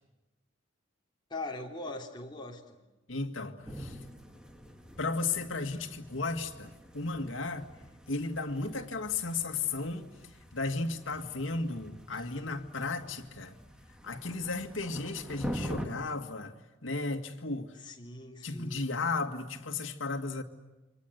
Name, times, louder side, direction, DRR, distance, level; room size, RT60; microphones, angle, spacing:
voice 1, 1.3-2.8 12.2-12.3 17.8-18.9, left 2 dB, 25° left, 3.6 m, -41 dB
voice 2, 3.1-4.0 5.0-7.7 8.1-10.1 10.5-13.6 14.0-17.7 18.4-20.4, left 3 dB, 85° left, 2.1 m, -34 dB
sound 1, 3.7-15.9, equal, 5° right, 2.0 m, -45 dB
29.0 x 24.5 x 8.1 m
head